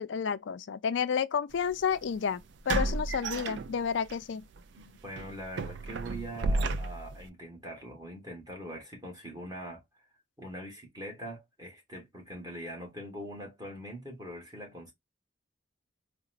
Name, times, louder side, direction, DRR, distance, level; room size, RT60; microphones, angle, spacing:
voice 1, 0.0-4.4, left 7 dB, 65° left, 0.4 m, -31 dB
sound 1, 1.6-1.7 2.7-4.1 4.5-4.7 5.2-7.3, right 2 dB, 60° right, 0.4 m, -32 dB
voice 2, 4.8-9.8 10.4-14.9, right 1 dB, 20° right, 1.2 m, -42 dB
3.9 x 2.1 x 2.4 m
head